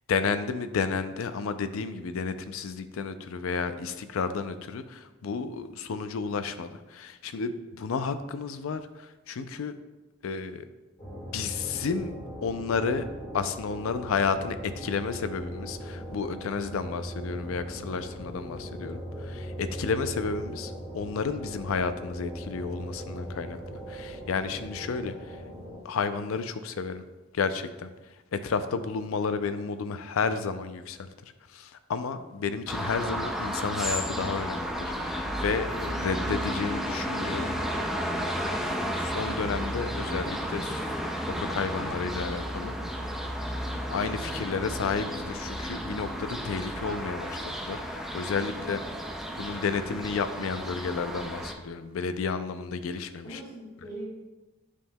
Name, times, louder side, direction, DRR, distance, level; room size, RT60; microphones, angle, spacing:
voice 1, 0.1-9.8 10.2-10.7 11.3-12.1 12.4-13.1 13.3-25.4 25.8-27.0 27.3-27.9 28.3-31.1 31.5-38.0 38.9-40.9 41.2-42.7 43.9-48.8 49.4-53.4, left 5 dB, 80° left, 11 dB, 0.4 m, -32 dB
sound 1, 11.0-25.8, equal, 25° left, 1.5 m, -39 dB
sound 2, 32.7-51.5, equal, ahead, 0.4 m, -33 dB
voice 2, 48.4-48.7 53.2-54.1, right 1 dB, 45° left, -10 dB, 1.7 m, -41 dB
8.3 x 5.4 x 2.2 m, 1.1 s
head